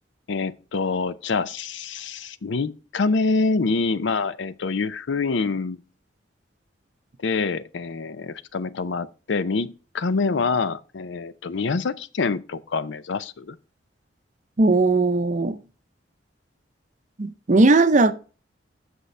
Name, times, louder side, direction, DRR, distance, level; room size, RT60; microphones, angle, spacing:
voice 1, 0.3-5.8 7.2-13.6, left 4 dB, 75° left, 0.5 m, -26 dB
voice 2, 14.6-15.6 17.2-18.1, right 2 dB, 40° right, 0.6 m, -18 dB
8.0 x 6.3 x 3.2 m
head